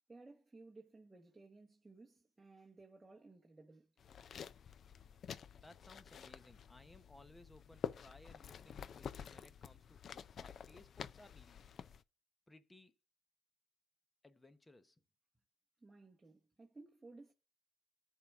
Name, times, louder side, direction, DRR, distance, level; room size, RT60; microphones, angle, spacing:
voice 1, 0.1-3.9 15.8-17.3, right 3 dB, 20° right, 1.1 m, -58 dB
sound 1, 4.0-12.0, left 7 dB, 55° left, 0.4 m, -49 dB
voice 2, 5.6-11.9 12.5-12.9 14.2-15.0, left 2 dB, 15° left, 0.9 m, -61 dB
14.0 x 4.7 x 2.5 m
cardioid pair, 90°, 0 cm